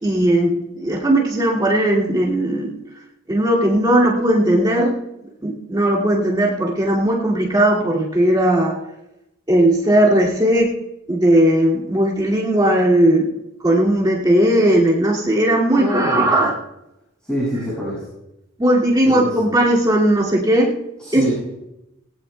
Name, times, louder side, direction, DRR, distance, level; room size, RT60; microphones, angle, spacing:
voice 1, 0.0-2.7 3.3-5.0 5.4-8.8 9.5-10.7 11.1-13.3 13.6-16.6 18.6-20.7 21.1-21.2, right 1 dB, 20° right, -5 dB, 2.4 m, -17 dB
voice 2, 15.7-16.3 17.2-18.0 19.0-19.3 21.0-21.3, equal, 5° left, -9 dB, 6.7 m, -24 dB
20.0 x 17.5 x 2.3 m, 0.89 s
head